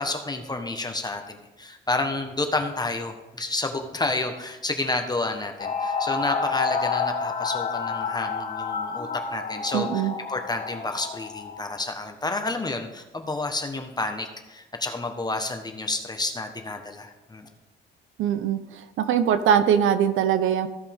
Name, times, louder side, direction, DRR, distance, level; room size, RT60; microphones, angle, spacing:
voice 1, 0.0-17.5, left 2 dB, 20° left, 5 dB, 1.2 m, -30 dB
sound 1, 5.6-11.7, left 5 dB, 45° left, 1.2 m, -29 dB
voice 2, 9.7-10.1 18.2-18.6 19.0-20.7, right 8 dB, 85° right, 11 dB, 0.8 m, -21 dB
15.5 x 5.5 x 3.6 m, 1.1 s
cardioid pair, 90°, 20 cm